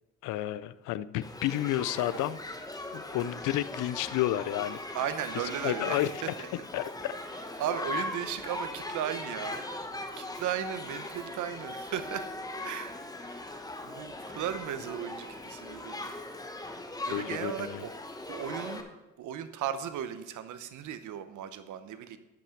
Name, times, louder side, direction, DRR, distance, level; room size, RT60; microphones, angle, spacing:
voice 1, 0.2-2.4 2.9-4.8 5.6-6.1 6.7-7.2 17.1-17.9, left 13 dB, 90° left, 17 dB, 0.5 m, -31 dB
Shout / Human group actions, 1.2-18.8, left 2 dB, 10° left, 1.1 m, -39 dB
voice 2, 4.9-6.5 7.6-9.9 10.2-12.3 12.6-13.5 13.8-16.1 17.1-17.9 18.3-18.9 19.2-22.2, right 10 dB, 80° right, 11 dB, 0.9 m, -36 dB
8.7 x 6.2 x 6.3 m, 1.0 s
cardioid pair, 90°, 30 cm